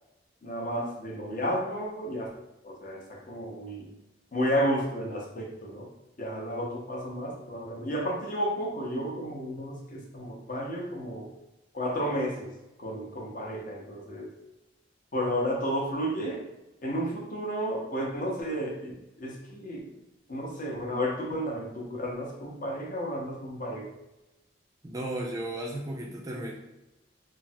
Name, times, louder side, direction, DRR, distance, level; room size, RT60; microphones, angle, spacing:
voice 1, 0.4-2.3 2.6-3.9 4.3-5.9 6.2-11.3 11.7-12.5 12.8-14.3 15.1-16.4 16.8-18.9 19.2-19.9 20.3-23.9, equal, 50° left, -1 dB, 0.6 m, -32 dB
voice 2, 24.8-26.5, right 1 dB, 20° right, -1 dB, 0.3 m, -34 dB
3.2 x 2.0 x 2.6 m, 0.96 s
head